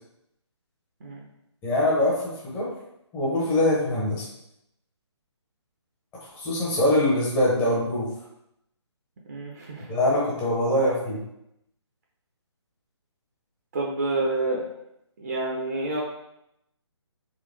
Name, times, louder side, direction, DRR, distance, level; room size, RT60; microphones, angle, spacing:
voice 1, 1.6-2.7 3.1-4.2 6.3-8.1 9.9-11.2, left 1 dB, 10° left, -5 dB, 0.9 m, -23 dB
voice 2, 9.3-9.9 13.7-14.6 15.2-16.0, right 2 dB, 35° right, -2 dB, 0.7 m, -28 dB
3.8 x 3.2 x 3.2 m, 0.80 s
figure-of-eight pair, 140°, 15 cm